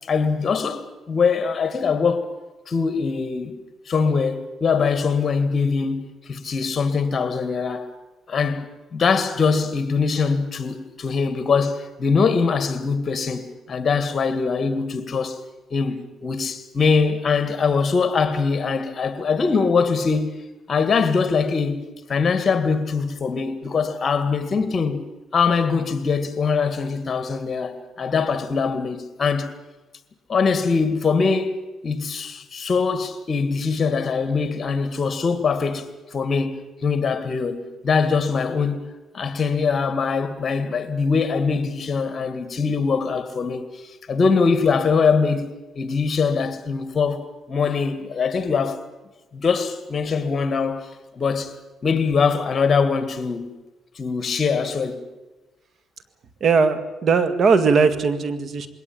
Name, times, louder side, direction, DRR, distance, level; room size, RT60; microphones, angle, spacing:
voice 1, 0.1-0.8 1.1-2.3 2.7-3.6 3.9-7.9 8.3-15.4 15.7-20.4 20.7-21.8 22.1-25.0 25.3-29.5 30.3-31.5 31.8-38.9 39.1-43.7 44.1-48.8 49.3-50.9 51.2-51.5 51.8-53.5 54.0-55.0, left 5 dB, 40° left, 2.1 m, -22 dB
voice 2, 56.4-58.7, right 5 dB, 55° right, 1.8 m, -19 dB
21.5 x 18.0 x 8.8 m
cardioid pair, 90°, 0 cm